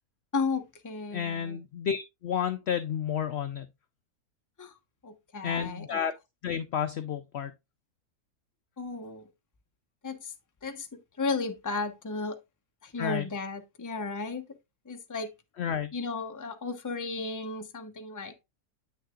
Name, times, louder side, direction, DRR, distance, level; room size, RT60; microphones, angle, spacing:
voice 1, 0.3-1.6 4.6-4.8 5.0-6.0 8.8-9.3 10.0-10.3 10.6-10.9 11.2-12.4 12.8-14.4 14.8-15.3 15.9-18.3, left 4 dB, 15° left, 0.6 m, -34 dB
voice 2, 1.1-3.7 5.4-6.1 6.4-7.5 13.0-13.3 15.6-15.9, left 8 dB, 65° left, 0.7 m, -31 dB
8.6 x 6.4 x 2.4 m
omnidirectional pair, 1.5 m